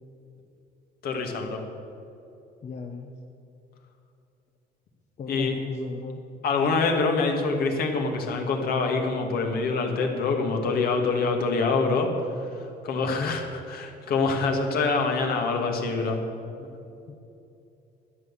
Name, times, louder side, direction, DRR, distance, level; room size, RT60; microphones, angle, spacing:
voice 1, 1.0-1.6 5.3-5.6 6.4-12.1 12.8-16.2 16.6-16.7, left 4 dB, 65° left, 3 dB, 2.1 m, -25 dB
voice 2, 2.6-3.1 5.2-6.2 13.1-13.3 17.1-17.2, left 5 dB, 40° left, 3 dB, 1.0 m, -35 dB
12.5 x 9.7 x 7.4 m, 2.7 s
cardioid pair, 110°, 17 cm